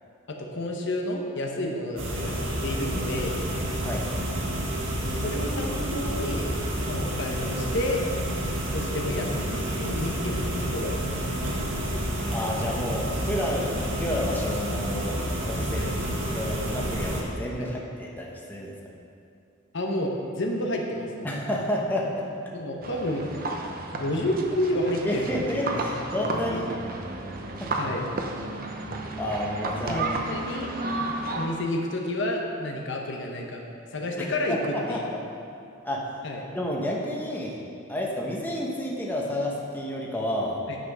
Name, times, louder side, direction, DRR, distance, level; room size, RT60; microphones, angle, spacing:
voice 1, 0.3-3.4 5.0-6.5 6.8-8.0 8.7-11.6 15.8-15.9 17.6-17.7 19.7-21.4 22.5-23.3 23.9-26.0 26.5-26.8 27.8-28.0 29.9-30.7 31.3-33.6 33.9-35.0 36.2-36.4 40.7-40.8, left 1 dB, 60° left, 1 dB, 1.0 m, -30 dB
sound 1, 2.0-17.2, right 1 dB, 65° right, 1.7 m, -29 dB
voice 2, 12.3-15.2 15.4-15.9 16.3-18.7 21.2-22.3 25.0-26.7 27.6-27.7 29.2-30.1 34.2-35.2 35.8-36.0 36.5-37.6 37.9-40.6, left 1 dB, 10° left, -3 dB, 1.0 m, -30 dB
sound 2, 22.8-31.5, right 2 dB, 45° right, 0.8 m, -32 dB
9.9 x 5.8 x 5.4 m, 2.5 s
head